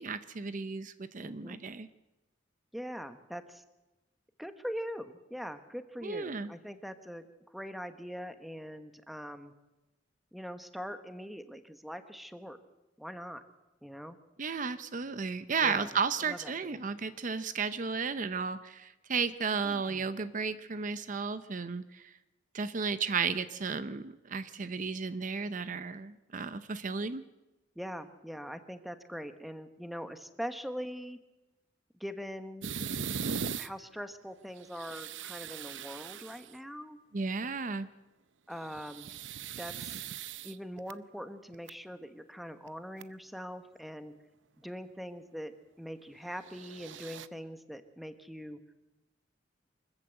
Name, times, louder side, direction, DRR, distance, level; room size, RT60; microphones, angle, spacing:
voice 1, 0.0-1.9 6.0-6.5 14.4-22.0 22.5-27.2 37.1-37.9, right 5 dB, 45° right, 12 dB, 0.7 m, -34 dB
voice 2, 1.2-1.6 2.7-3.6 4.4-9.5 10.3-12.6 13.0-13.4 13.8-14.2 15.6-15.9 16.2-16.8 19.5-20.1 27.7-31.2 32.0-32.7 33.6-37.0 38.5-39.1 39.6-40.0 40.4-44.1 44.6-48.6, equal, ahead, 9 dB, 1.1 m, -42 dB
sound 1, 32.6-33.7 34.6-36.6 38.5-40.9 41.5-41.7 42.7-42.8 43.0-43.1 46.4-47.3, right 6 dB, 90° right, 0.7 m, -39 dB
24.0 x 14.5 x 8.0 m, 1.0 s
head